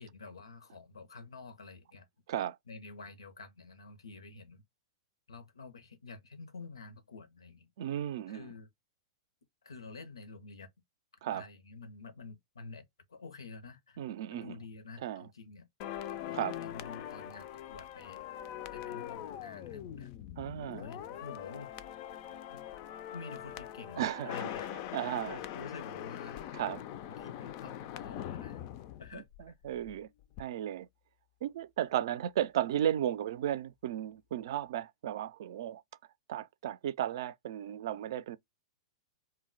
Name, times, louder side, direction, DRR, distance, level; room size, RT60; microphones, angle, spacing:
voice 1, 0.0-2.1 2.7-4.6 5.3-7.7 8.3-8.7 9.6-10.7 11.3-12.8 13.1-14.0 14.3-15.7 16.1-20.1 20.7-21.7 22.5-22.6 23.1-26.4 27.1-28.6 29.0-29.5, left 4 dB, 90° left, 0.7 m, -49 dB
voice 2, 7.8-8.5 11.2-11.5 14.0-14.6 15.0-15.3 16.3-16.6 20.4-20.9 24.0-25.4 26.5-26.8 29.1-29.2 29.6-30.1 30.4-30.9 31.4-35.8 36.3-38.4, right 11 dB, 65° right, 0.4 m, -35 dB
sound 1, 15.8-29.9 30.2-30.4, left 11 dB, 45° left, 0.3 m, -42 dB
2.2 x 2.0 x 3.8 m
hypercardioid pair, 115°, 3 cm